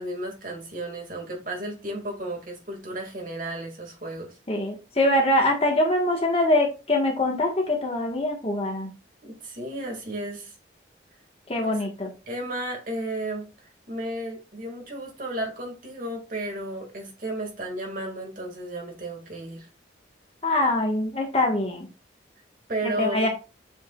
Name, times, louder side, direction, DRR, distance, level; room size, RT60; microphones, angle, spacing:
voice 1, 0.0-4.4 9.2-10.5 11.6-11.9 12.3-19.7 22.7-23.3, right 1 dB, 45° right, 1 dB, 2.4 m, -33 dB
voice 2, 4.5-8.9 11.5-12.1 20.4-21.9 23.0-23.3, left 1 dB, 30° left, 1 dB, 1.6 m, -23 dB
7.6 x 5.2 x 2.5 m, 0.30 s
head